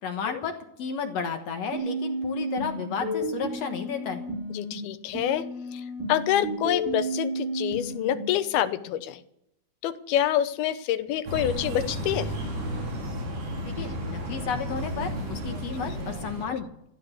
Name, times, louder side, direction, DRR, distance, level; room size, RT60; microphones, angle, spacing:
voice 1, 0.0-4.2 13.7-16.7, left 6 dB, 55° left, 5 dB, 2.0 m, -33 dB
sound 1, 1.7-4.7 5.1-8.2, right 1 dB, 65° right, 5.7 m, -32 dB
voice 2, 4.5-5.5 5.7-5.8 6.1-9.2 9.8-12.3 16.5-16.6, left 11 dB, 85° left, 11 dB, 2.8 m, -27 dB
sound 2, 11.3-16.5, equal, 85° right, 5.9 m, -33 dB
16.0 x 10.5 x 7.0 m, 0.78 s
omnidirectional pair, 4.3 m